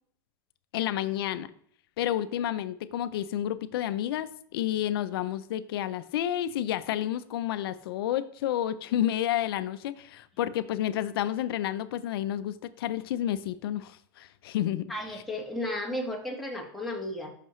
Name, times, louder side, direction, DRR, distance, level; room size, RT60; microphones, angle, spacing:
voice 1, 0.7-1.5 2.0-14.9 15.1-15.2, left 11 dB, 80° left, 12 dB, 0.5 m, -30 dB
voice 2, 14.9-17.3, left 1 dB, ahead, -2 dB, 1.6 m, -34 dB
11.0 x 5.8 x 3.1 m, 0.64 s
supercardioid pair, 130°, 12 cm